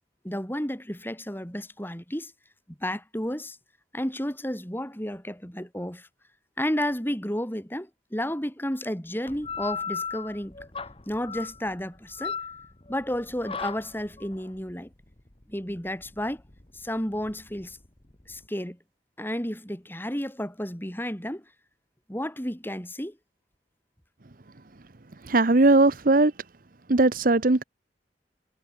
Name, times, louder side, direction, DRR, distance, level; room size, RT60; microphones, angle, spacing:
voice 1, 0.2-2.3 2.8-3.6 3.9-6.1 6.6-10.6 11.1-12.4 12.9-14.9 15.5-16.4 16.7-17.8 18.3-18.8 19.2-21.4 22.1-23.2, equal, 10° left, 6.0 m, -32 dB
sound 1, 9.3-18.5, left 6 dB, 30° left, 1.5 m, -38 dB
voice 2, 25.3-26.3 26.9-27.6, right 2 dB, 50° right, 1.0 m, -19 dB
head